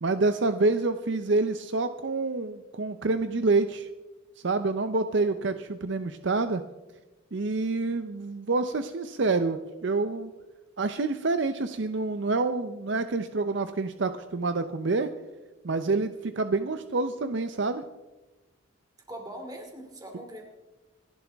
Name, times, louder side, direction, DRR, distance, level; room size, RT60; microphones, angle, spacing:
voice 1, 0.0-3.9 4.4-6.6 7.3-10.3 10.8-15.1 15.6-17.8, right 3 dB, 60° right, 10 dB, 0.6 m, -27 dB
voice 2, 19.1-20.4, right 1 dB, 20° right, 3 dB, 2.4 m, -41 dB
26.5 x 11.0 x 3.5 m, 1.1 s
head